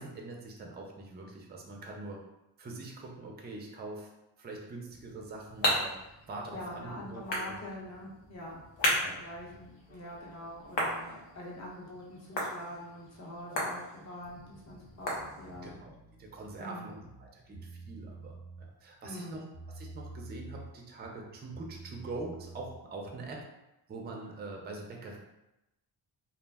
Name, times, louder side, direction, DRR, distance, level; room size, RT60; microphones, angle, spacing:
voice 1, 0.0-2.2 2.6-4.1 4.4-6.0 6.3-7.6 9.0-9.2 15.6-15.9 16.2-23.4 23.9-25.2, right 2 dB, 25° right, 0 dB, 0.4 m, -43 dB
sound 1, 4.9-15.8, equal, 70° left, 0.8 m, -36 dB
voice 2, 6.5-15.7 16.6-17.0 19.0-19.5, left 1 dB, 40° left, -4 dB, 0.8 m, -44 dB
sound 2, 15.5-16.6 16.9-18.7 19.0-20.8 21.0-23.4, right 3 dB, 85° left, 1.4 m, -48 dB
2.4 x 2.0 x 3.4 m, 0.92 s
wide cardioid pair, 135°, 45 cm